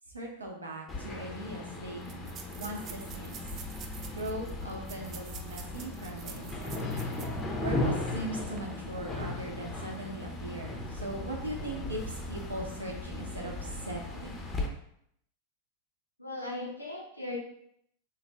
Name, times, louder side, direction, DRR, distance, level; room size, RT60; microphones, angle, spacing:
voice 1, 0.1-2.0 2.6-3.4 4.1-6.9 7.6-14.4, right 1 dB, 80° right, 0 dB, 0.7 m, -39 dB
sound 1, 0.9-14.7, left 2 dB, 20° left, 0.6 m, -37 dB
sound 2, 0.9-1.0 1.2-1.3 2.0-7.4 7.8-7.9 8.4-8.6, right 7 dB, 35° right, 0.3 m, -48 dB
voice 2, 16.2-17.4, left 2 dB, 85° left, -1 dB, 0.7 m, -38 dB
3.2 x 2.3 x 3.1 m, 0.71 s
figure-of-eight pair, 90°, 0 cm